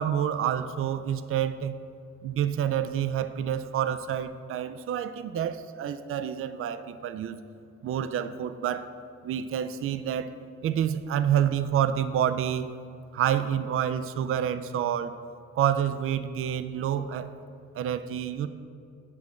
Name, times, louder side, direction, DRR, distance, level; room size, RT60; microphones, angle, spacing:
voice 1, 0.0-1.8 2.2-7.4 7.8-8.9 9.2-10.3 10.6-12.7 13.1-15.1 15.5-17.3 17.7-18.5, right 9 dB, 45° right, 12 dB, 0.4 m, -28 dB
8.4 x 3.5 x 6.3 m, 2.4 s
cardioid pair, 90°, 30 cm